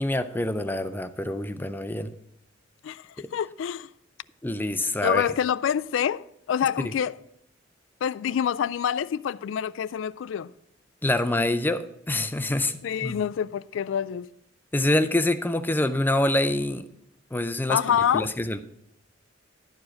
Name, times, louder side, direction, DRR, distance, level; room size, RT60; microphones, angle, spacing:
voice 1, 0.0-2.1 3.2-3.3 4.4-5.3 11.0-13.2 14.7-16.9 17.3-17.8 18.1-18.6, left 1 dB, 10° left, 0.4 m, -26 dB
voice 2, 3.3-3.9 5.0-6.2 6.5-7.1 8.0-10.5 12.8-14.3 17.7-18.3, left 8 dB, 80° left, 0.3 m, -26 dB
11.5 x 4.8 x 6.1 m
head